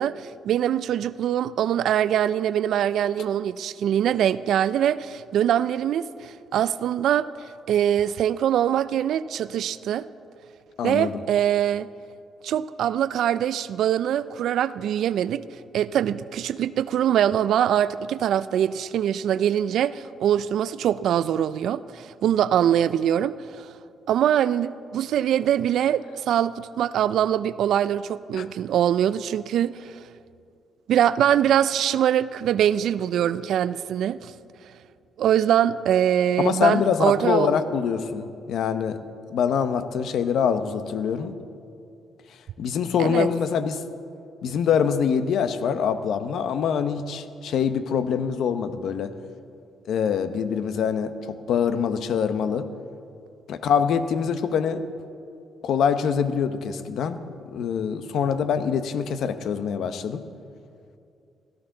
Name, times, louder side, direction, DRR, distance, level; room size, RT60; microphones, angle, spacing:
voice 1, 0.0-10.0 10.8-11.9 12.4-15.4 15.7-23.7 24.1-29.9 30.9-34.3 35.2-37.5 43.0-43.3, right 10 dB, 75° right, 16 dB, 0.3 m, -23 dB
voice 2, 10.8-11.2 28.3-28.5 36.4-39.0 39.3-41.4 42.6-43.8 44.4-49.1 49.9-52.7 53.5-54.8 55.6-60.2, left 7 dB, 75° left, 10 dB, 0.8 m, -24 dB
17.0 x 14.0 x 3.8 m, 2.5 s
cardioid pair, 90°, 0 cm